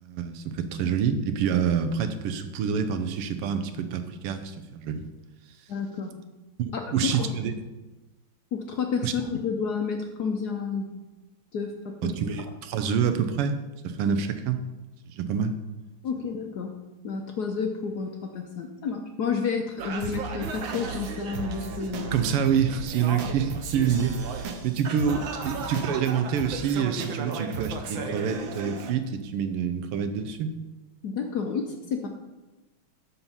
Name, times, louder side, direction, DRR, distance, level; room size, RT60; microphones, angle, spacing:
voice 1, 0.0-5.1 6.6-7.5 9.0-9.1 12.0-13.6 13.8-14.6 15.0-15.5 22.1-30.5, right 7 dB, 90° right, 9 dB, 1.7 m, -27 dB
voice 2, 5.7-6.1 6.7-7.3 8.5-10.9 11.5-12.2 16.0-16.7 17.0-22.2 31.0-32.1, left 5 dB, 65° left, 4 dB, 1.0 m, -30 dB
Singing, 19.8-28.9, right 4 dB, 65° right, 1.5 m, -34 dB
12.0 x 4.4 x 5.5 m, 1.1 s
omnidirectional pair, 2.4 m